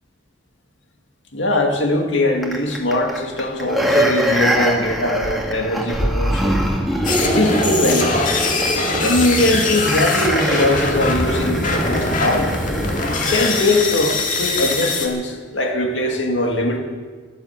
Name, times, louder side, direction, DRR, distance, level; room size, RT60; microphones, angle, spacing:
voice 1, 1.3-6.6 7.2-8.2 9.0-12.5 13.3-16.8, left 1 dB, 85° left, 3 dB, 2.2 m, -21 dB
sound 1, 2.4-13.9 14.3-14.4, right 1 dB, ahead, 2.2 m, -23 dB
sound 2, 7.0-15.1, left 3 dB, 45° left, 2.1 m, -22 dB
14.5 x 11.5 x 8.2 m, 1.5 s
head